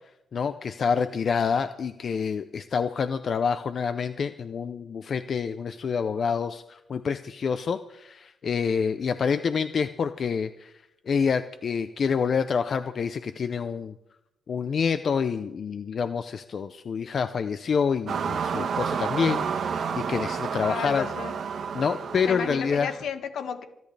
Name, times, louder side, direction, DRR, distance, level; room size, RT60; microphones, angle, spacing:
voice 1, 0.3-10.7 11.1-13.9 14.5-21.1 21.7-22.9, left 6 dB, 50° left, 11 dB, 0.6 m, -27 dB
sound 1, 18.1-23.0, right 6 dB, 60° right, 1.3 m, -30 dB
voice 2, 20.6-21.4 22.3-23.6, left 7 dB, 70° left, 6 dB, 1.8 m, -32 dB
28.0 x 11.0 x 3.4 m, 0.86 s
cardioid pair, 105°, 0 cm